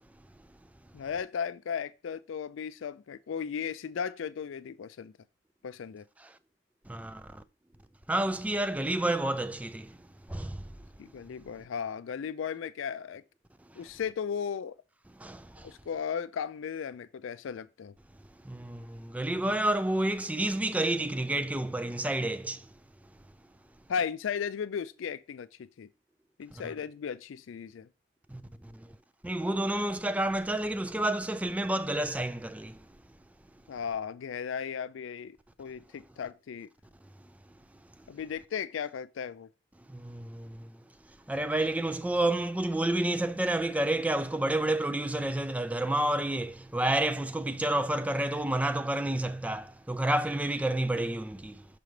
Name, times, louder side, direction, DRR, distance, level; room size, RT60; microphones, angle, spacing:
voice 1, 0.9-5.1 5.6-6.0 11.0-13.2 13.8-14.7 15.6-17.9 23.9-25.9 26.4-27.9 33.7-36.7 38.1-39.5, left 7 dB, 70° left, 0.4 m, -36 dB
voice 2, 6.9-7.4 8.1-10.7 13.7-13.8 15.1-15.7 18.4-22.7 26.5-26.7 28.3-29.0 29.2-32.8 39.9-40.8 41.3-51.7, right 1 dB, 5° right, 0.3 m, -30 dB
6.7 x 5.1 x 3.1 m
head